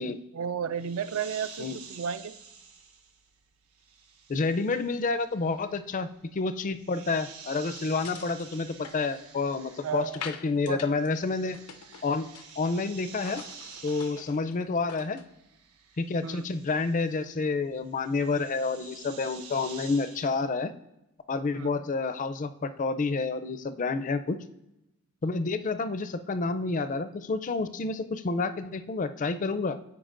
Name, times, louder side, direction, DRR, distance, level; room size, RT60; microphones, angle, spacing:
voice 1, 0.0-2.3 9.8-10.2 10.7-10.8 16.2-16.4 21.5-21.7, right 7 dB, 65° right, 14 dB, 0.4 m, -33 dB
sound 1, 0.7-10.5 10.7-20.4, right 6 dB, 90° right, 1.2 m, -50 dB
voice 2, 4.3-11.6 12.0-12.3 12.6-13.4 13.8-15.2 16.0-20.7 21.3-24.4 25.2-29.8, left 3 dB, 35° left, 11 dB, 0.4 m, -29 dB
sound 2, 7.8-9.7 10.1-11.1 11.3-12.7 13.0-15.3, left 7 dB, 90° left, 0.6 m, -45 dB
14.0 x 4.8 x 2.5 m, 0.89 s
head